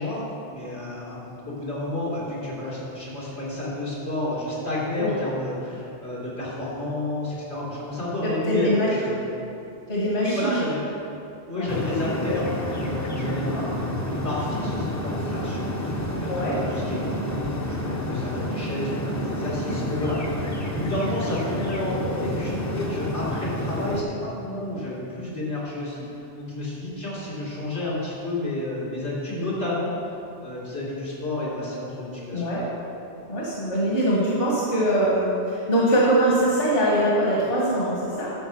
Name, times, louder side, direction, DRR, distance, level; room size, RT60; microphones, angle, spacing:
voice 1, 0.0-9.2 10.2-10.8 11.5-20.4 20.7-29.9 30.4-32.5, left 1 dB, 80° left, -8 dB, 3.3 m, -30 dB
voice 2, 8.2-8.9 9.9-10.6 11.6-11.7 13.2-13.6 16.3-16.5 32.3-32.6 33.3-38.3, right 1 dB, 55° left, -6 dB, 1.9 m, -23 dB
sound 1, 11.7-24.0, left 1 dB, 15° left, 0.7 m, -29 dB
11.5 x 5.0 x 7.0 m, 2.7 s
omnidirectional pair, 1.2 m